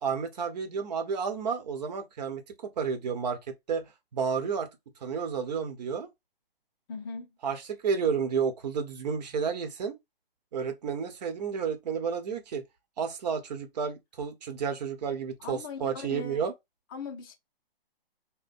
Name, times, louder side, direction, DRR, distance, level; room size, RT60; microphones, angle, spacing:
voice 1, 0.0-3.4 3.7-3.8 4.1-4.7 5.0-6.1 7.4-9.9 10.5-12.6 13.0-16.5, right 6 dB, 45° right, 1.0 m, -31 dB
voice 2, 6.9-7.4 15.4-16.4 16.9-17.4, left 5 dB, 20° left, 0.5 m, -39 dB
3.3 x 2.2 x 4.1 m
hypercardioid pair, 145°, 30 cm